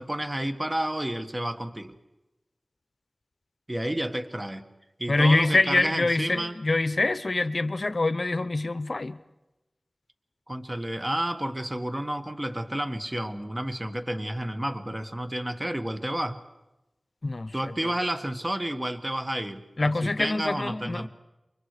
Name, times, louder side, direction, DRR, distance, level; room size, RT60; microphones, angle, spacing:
voice 1, 0.0-2.0 3.7-4.6 5.0-6.6 10.5-16.4 17.5-21.1, right 1 dB, 25° right, 1.6 m, -31 dB
voice 2, 5.1-9.2 17.2-17.7 19.8-21.1, left 2 dB, 60° left, 0.8 m, -25 dB
29.0 x 23.5 x 4.9 m
wide cardioid pair, 45°, 0 cm